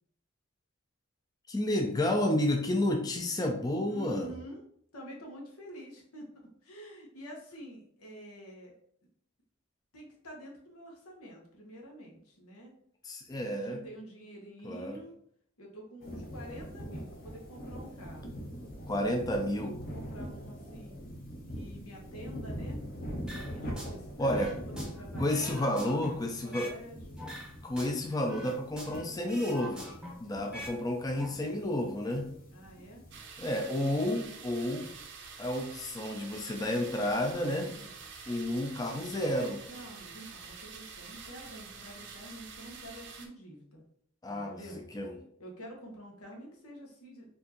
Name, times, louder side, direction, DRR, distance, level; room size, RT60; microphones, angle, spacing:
voice 1, 1.5-4.3 13.0-13.8 14.6-15.0 18.9-19.8 24.2-24.5 25.2-26.7 27.6-29.9 30.2-32.3 33.4-34.9 35.4-37.8 38.3-39.6 44.2-45.2, left 1 dB, 15° left, 2 dB, 0.3 m, -31 dB
voice 2, 3.9-4.6 4.9-6.3 6.6-8.7 9.9-12.7 13.5-15.1 15.6-18.5 18.8-21.0 21.5-22.8 23.3-25.7 26.2-27.2 32.5-33.0 37.7-38.0 39.7-43.8 44.3-44.8 45.4-47.4, equal, 90° left, 0 dB, 1.2 m, -48 dB
sound 1, 16.0-33.2, equal, 40° left, 0.9 m, -43 dB
sound 2, 23.3-23.9 24.3-26.8 27.2-29.0 29.3-30.8 31.0-31.3, equal, 5° right, 0.7 m, -44 dB
sound 3, 33.1-43.3, right 5 dB, 55° right, 0.5 m, -47 dB
4.4 x 2.6 x 2.9 m, 0.65 s
head